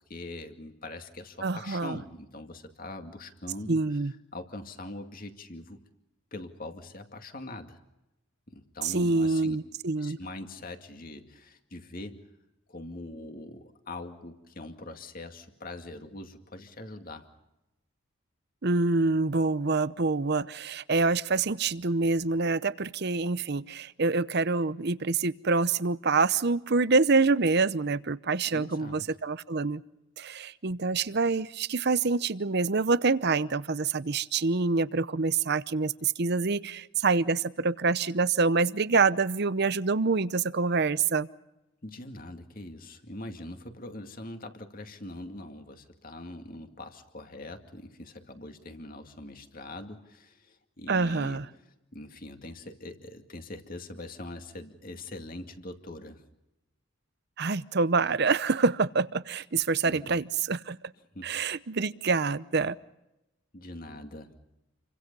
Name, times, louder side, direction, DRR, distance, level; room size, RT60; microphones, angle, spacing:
voice 1, 0.0-4.0 4.3-5.8 6.3-7.8 8.5-9.6 10.0-12.3 12.7-17.3 28.5-29.1 41.8-51.4 51.9-56.2 59.8-60.2 61.1-61.4 63.5-64.4, left 2 dB, 40° left, 6 dB, 2.2 m, -42 dB
voice 2, 1.4-2.0 3.7-4.1 8.8-10.2 18.6-29.8 30.2-41.3 50.9-51.4 57.4-60.8 61.2-62.8, right 4 dB, 50° right, 16 dB, 0.7 m, -26 dB
29.0 x 24.5 x 5.5 m, 0.94 s
head